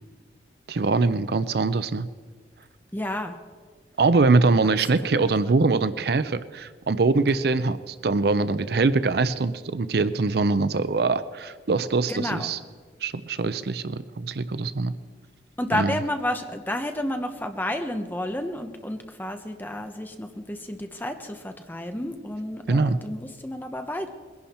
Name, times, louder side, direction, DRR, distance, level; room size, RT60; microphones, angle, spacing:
voice 1, 0.7-2.1 4.0-12.6 13.0-14.9 15.7-16.0 22.7-23.0, right 3 dB, 60° right, 14 dB, 0.5 m, -23 dB
voice 2, 2.9-3.3 5.1-5.2 12.1-12.5 15.6-24.1, left 1 dB, 10° left, 6 dB, 0.9 m, -31 dB
21.5 x 11.0 x 4.3 m, 1.5 s
head